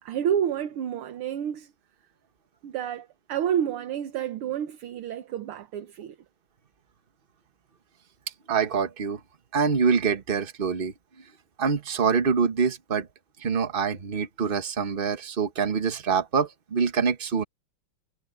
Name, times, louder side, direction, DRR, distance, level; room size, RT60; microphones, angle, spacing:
voice 1, 0.0-1.7 2.6-6.2, right 9 dB, 75° right, 1.9 m, -29 dB
voice 2, 8.5-9.2 9.5-10.9 11.6-13.1 13.4-17.4, right 6 dB, 30° right, 1.1 m, -25 dB
omnidirectional pair, 2.4 m